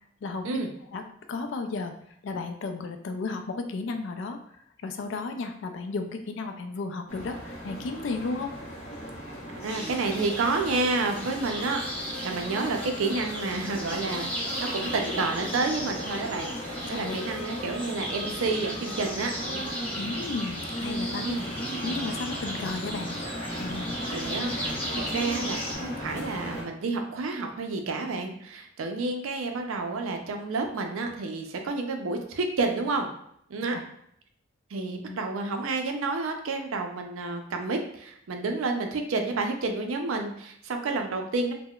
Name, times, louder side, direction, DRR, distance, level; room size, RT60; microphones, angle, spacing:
voice 1, 0.2-0.6 0.9-1.0 1.3-1.9 2.2-4.4 4.8-8.5 16.9-17.2 20.0-21.3 21.8-23.1 23.6-24.0 33.7-33.8 35.0-35.2, left 3 dB, 60° left, 6 dB, 0.3 m, -33 dB
sound 1, 7.1-26.6, equal, 35° left, 0.7 m, -37 dB
voice 2, 9.5-11.8 12.2-14.3 14.6-19.7 21.2-21.4 24.1-24.6 24.9-33.1 33.5-33.8 34.7-41.5, right 3 dB, 85° right, 4 dB, 0.4 m, -30 dB
sound 2, 9.7-25.7, equal, 5° left, 0.9 m, -36 dB
3.5 x 2.1 x 2.3 m, 0.70 s
head